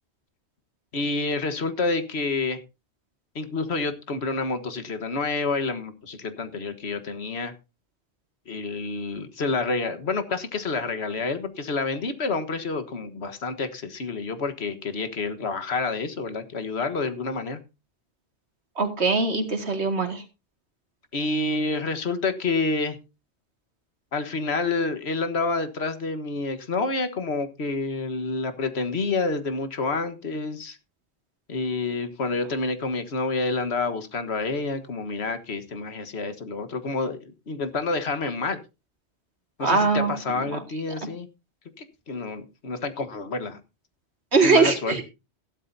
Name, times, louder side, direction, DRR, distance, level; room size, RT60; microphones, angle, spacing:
voice 1, 0.9-2.6 3.4-7.5 8.5-17.6 21.1-23.0 24.1-30.8 31.5-38.6 39.6-41.3 41.8-43.6 44.4-45.0, left 3 dB, 75° left, 1.7 m, -28 dB
voice 2, 18.8-20.2 39.6-40.6 44.3-45.0, right 4 dB, 80° right, 2.4 m, -22 dB
15.0 x 12.5 x 2.7 m
omnidirectional pair, 1.1 m